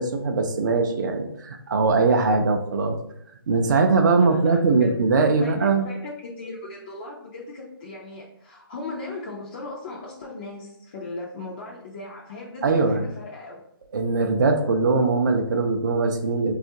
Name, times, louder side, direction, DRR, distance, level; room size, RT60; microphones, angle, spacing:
voice 1, 0.0-3.0 3.5-5.9 12.6-13.1 13.9-16.5, right 4 dB, 50° right, 4 dB, 0.4 m, -21 dB
voice 2, 4.1-4.9 5.4-13.6, left 2 dB, 25° left, -4 dB, 0.3 m, -38 dB
3.6 x 2.4 x 2.6 m, 0.76 s
hypercardioid pair, 160°, 13 cm